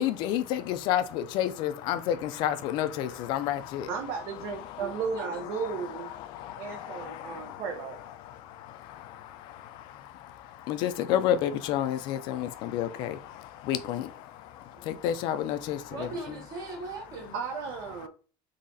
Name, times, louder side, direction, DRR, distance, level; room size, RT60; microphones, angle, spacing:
voice 1, 0.0-3.9 4.6-5.0 5.5-7.8 8.1-16.1 18.0-18.1, left 11 dB, 45° left, 0.4 m, -31 dB
voice 2, 3.9-6.1 6.6-8.0 17.3-18.1, right 6 dB, 65° right, 0.7 m, -34 dB
voice 3, 5.1-5.5 14.7-14.9 15.9-17.4, right 2 dB, 40° right, 0.9 m, -39 dB
4.0 x 2.8 x 2.6 m
cardioid pair, 180°, 10 cm